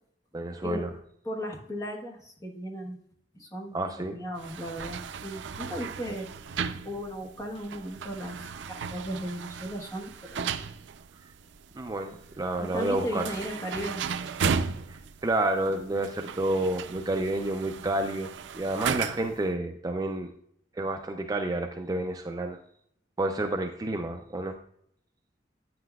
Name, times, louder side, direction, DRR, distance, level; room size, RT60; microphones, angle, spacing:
voice 1, 0.3-0.9 3.7-4.2 11.7-13.2 14.9-20.3 20.8-22.6 23.2-24.6, right 2 dB, 20° right, 4 dB, 0.4 m, -30 dB
voice 2, 1.2-3.0 3.3-6.3 6.8-10.6 12.6-14.0, equal, 20° left, 0 dB, 1.2 m, -36 dB
sound 1, 4.4-19.4, right 6 dB, 80° right, 0.4 m, -36 dB
9.3 x 7.8 x 2.3 m, 0.69 s
head